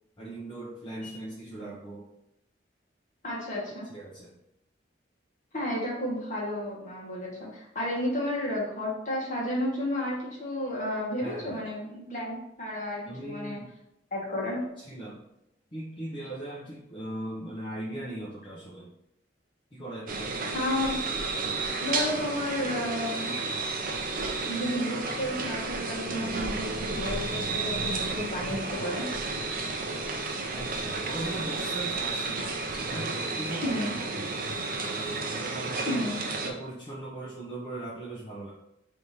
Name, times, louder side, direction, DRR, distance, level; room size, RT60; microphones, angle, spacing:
voice 1, 0.2-2.1 3.9-4.3 11.2-11.6 13.1-13.7 14.8-15.2 15.7-18.9 19.7-20.4 21.3-21.7 30.5-34.4 34.8-36.1 36.4-38.5, right 1 dB, 25° left, -6 dB, 0.7 m, -39 dB
voice 2, 3.2-3.9 5.5-13.6 14.1-14.6 20.5-21.0 21.8-23.4 24.4-29.0 33.6-33.9 35.8-36.2, left 1 dB, 45° left, -5 dB, 1.4 m, -32 dB
sound 1, 20.1-36.5, right 3 dB, 50° right, 0.6 m, -32 dB
3.4 x 2.8 x 4.7 m, 0.82 s
head